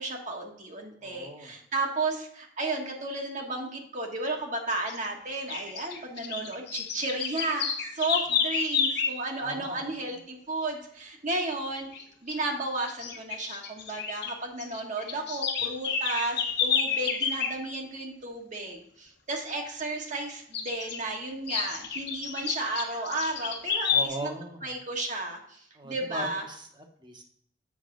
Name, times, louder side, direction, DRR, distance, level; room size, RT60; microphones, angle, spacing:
voice 1, 0.0-11.9 12.2-24.3 24.6-26.4, right 2 dB, 40° right, 1 dB, 1.2 m, -33 dB
voice 2, 1.0-1.5 9.4-9.9 23.9-24.8 25.7-27.2, right 1 dB, 25° right, 4 dB, 1.1 m, -39 dB
sound 1, 4.9-5.1 5.5-9.2 11.8-12.0 12.3-12.4 12.9-14.3 14.6-17.5 20.5-21.0 21.5-24.1, left 6 dB, 60° left, 1.2 m, -30 dB
7.3 x 5.9 x 3.8 m, 0.67 s
head